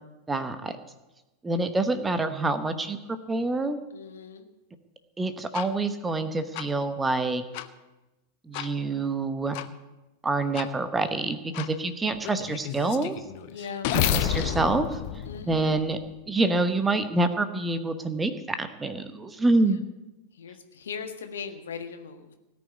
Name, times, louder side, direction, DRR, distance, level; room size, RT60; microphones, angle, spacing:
voice 1, 0.3-0.8 1.4-3.8 5.2-7.4 8.5-9.5 10.2-13.2 13.9-15.0 15.5-16.0 16.3-19.8, right 2 dB, 10° right, 10 dB, 1.1 m, -26 dB
voice 2, 3.9-4.5 13.5-13.9 15.2-15.8 20.4-22.3, left 6 dB, 65° left, 6 dB, 1.6 m, -39 dB
sound 1, 5.5-5.7 6.5-6.7 7.5-7.7 8.5-8.7 9.5-9.7 10.5-10.7 11.5-11.7 12.2-16.1, left 11 dB, 45° left, 0.9 m, -30 dB
18.0 x 6.2 x 9.7 m, 1.0 s
figure-of-eight pair, 90°, 0 cm